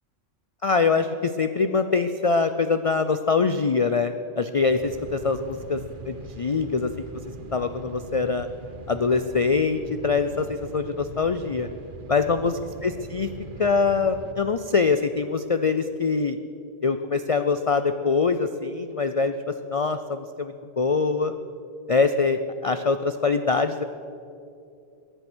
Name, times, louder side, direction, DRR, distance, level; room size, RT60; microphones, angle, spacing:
voice 1, 0.6-5.8 6.1-6.9 7.5-8.5 8.9-11.7 12.1-12.5 12.8-13.3 13.6-16.4 16.8-21.3 21.9-23.8, left 4 dB, 60° left, 9 dB, 0.3 m, -24 dB
sound 1, 4.5-14.3, right 3 dB, 45° right, 1.1 m, -41 dB
19.0 x 11.5 x 6.2 m, 2.6 s
omnidirectional pair, 1.3 m